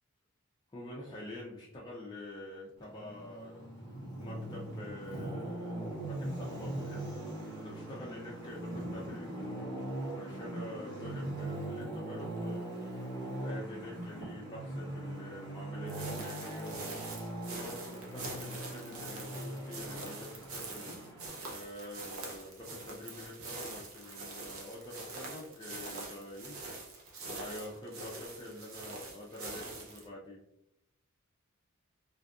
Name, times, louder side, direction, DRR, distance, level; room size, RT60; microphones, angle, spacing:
voice 1, 0.7-3.7 4.2-7.0 7.5-12.7 13.4-17.1 17.5-26.6 27.2-30.4, left 1 dB, 20° left, -4 dB, 0.3 m, -46 dB
Traffic noise roadway noise, 2.8-21.3, right 1 dB, 50° right, 1.0 m, -41 dB
sound 1, 15.9-30.1, right 2 dB, 65° right, 0.6 m, -44 dB
2.6 x 2.4 x 2.3 m, 0.80 s
head